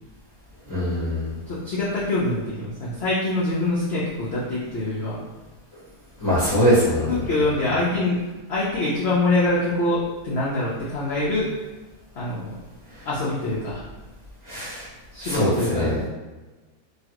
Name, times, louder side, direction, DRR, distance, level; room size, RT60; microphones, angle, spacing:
voice 1, 0.7-1.3 6.2-7.1 14.5-14.9 15.2-16.0, equal, 25° left, -12 dB, 0.5 m, -22 dB
voice 2, 1.5-5.2 7.1-8.2 8.5-11.5 12.1-12.5 13.1-13.8 15.1-16.1, left 2 dB, 75° left, -7 dB, 0.6 m, -24 dB
3.0 x 2.3 x 2.8 m, 1.2 s
omnidirectional pair, 1.8 m